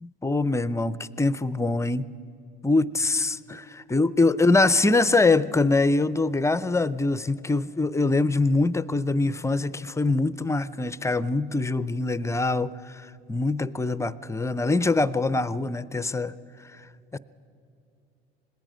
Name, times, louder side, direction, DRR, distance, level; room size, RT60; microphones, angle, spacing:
voice 1, 0.0-2.0 2.6-12.7 13.3-16.3 17.1-17.2, left 3 dB, 10° left, 17 dB, 0.5 m, -23 dB
26.5 x 19.5 x 5.1 m, 2.6 s
hypercardioid pair, 75°, 30 cm